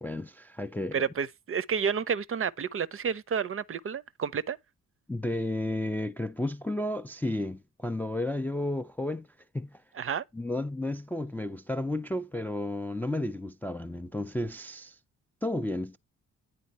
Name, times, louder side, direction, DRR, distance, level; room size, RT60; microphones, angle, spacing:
voice 1, 0.0-1.0 5.1-9.3 9.5-9.8 10.3-15.0 15.4-16.0, left 1 dB, 5° left, 0.4 m, -32 dB
voice 2, 0.9-4.6 10.0-10.2, right 6 dB, 35° right, 0.6 m, -30 dB
9.3 x 3.9 x 4.1 m
hypercardioid pair, 50°, 36 cm